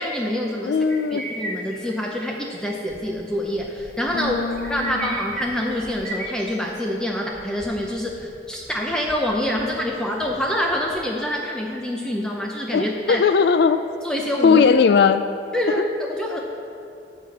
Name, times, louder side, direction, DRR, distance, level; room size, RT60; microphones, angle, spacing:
voice 1, 0.0-0.8 1.1-4.4 4.7-13.2 14.0-14.6 15.5-16.4, left 1 dB, 5° left, -1 dB, 0.6 m, -26 dB
voice 2, 0.6-1.2 4.1-5.1 12.7-13.8 14.4-15.2, left 5 dB, 60° left, 11 dB, 0.3 m, -18 dB
sound 1, 0.9-2.0 2.3-2.5 2.9-3.0 4.5-6.8, right 2 dB, 45° right, 1.2 m, -33 dB
sound 2, 2.5-9.9 10.2-10.4 10.7-11.2, equal, 65° right, 1.5 m, -46 dB
12.5 x 4.2 x 7.2 m, 2.6 s
head